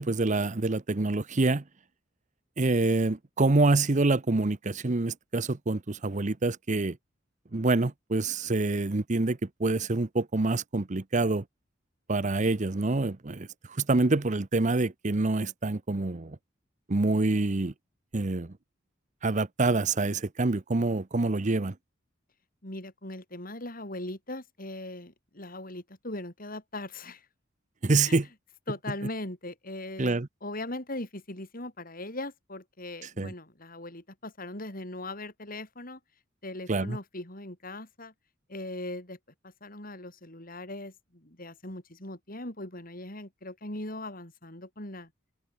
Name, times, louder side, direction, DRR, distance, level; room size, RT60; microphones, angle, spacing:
voice 1, 0.0-1.6 2.6-7.0 7.5-11.4 12.1-16.4 16.9-17.7 18.1-18.5 19.2-21.7 27.8-28.3 30.0-30.3 33.2-33.3 36.7-37.0, right 3 dB, 40° right, 0.8 m, -26 dB
voice 2, 22.6-27.3 28.1-28.2 28.7-36.0 36.4-38.1 38.5-39.2 39.4-45.1, left 1 dB, 45° left, 7.3 m, -39 dB
head